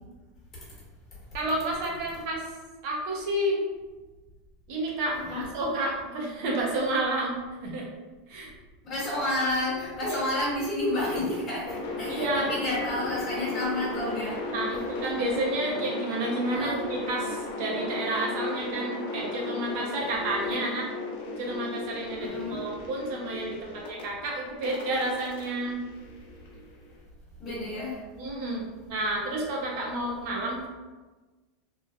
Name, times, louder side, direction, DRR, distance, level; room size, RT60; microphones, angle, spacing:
voice 1, 1.3-2.4 2.8-3.6 4.7-7.9 8.3-8.5 10.1-10.2 12.1-12.5 14.5-20.9 21.4-25.8 28.2-30.7, right 1 dB, 55° right, -2 dB, 0.6 m, -30 dB
voice 2, 5.1-5.5 8.8-14.4 14.7-14.8 16.5-16.8 22.2-22.6 27.4-28.0, left 1 dB, 30° left, -6 dB, 1.2 m, -30 dB
sound 1, 11.6-24.0 24.6-26.7, left 2 dB, 75° left, 0.6 m, -35 dB
3.0 x 2.2 x 2.3 m, 1.3 s
supercardioid pair, 160°, 0 cm